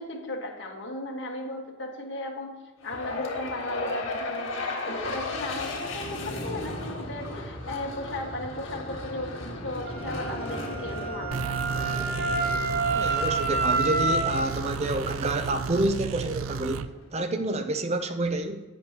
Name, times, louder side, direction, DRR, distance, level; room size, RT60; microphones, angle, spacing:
voice 1, 0.0-11.6, left 1 dB, 60° left, 0 dB, 1.6 m, -36 dB
sound 1, 2.8-17.0, left 2 dB, 75° left, 1.7 m, -36 dB
Wind instrument woodwind instrument, 9.8-14.5, right 3 dB, 45° right, 1.1 m, -28 dB
sound 2, 11.3-16.9, right 5 dB, 90° right, 0.4 m, -33 dB
voice 2, 12.9-16.9 17.1-18.6, right 2 dB, 30° right, 8 dB, 0.5 m, -28 dB
12.0 x 8.7 x 2.9 m, 1.1 s
head